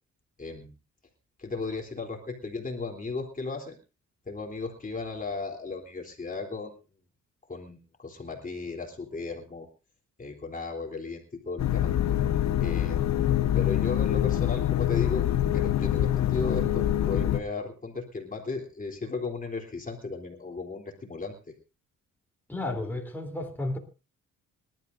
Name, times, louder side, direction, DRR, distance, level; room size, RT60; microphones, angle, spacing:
voice 1, 0.4-0.7 1.4-3.8 4.3-6.8 7.5-9.7 10.2-11.9 12.6-13.0 13.5-21.3, left 3 dB, 25° left, 3.5 m, -35 dB
sound 1, 11.6-17.4, left 12 dB, 65° left, 1.3 m, -25 dB
voice 2, 22.5-23.8, left 2 dB, 5° left, 3.5 m, -32 dB
26.0 x 12.5 x 2.7 m
cardioid pair, 90°, 30 cm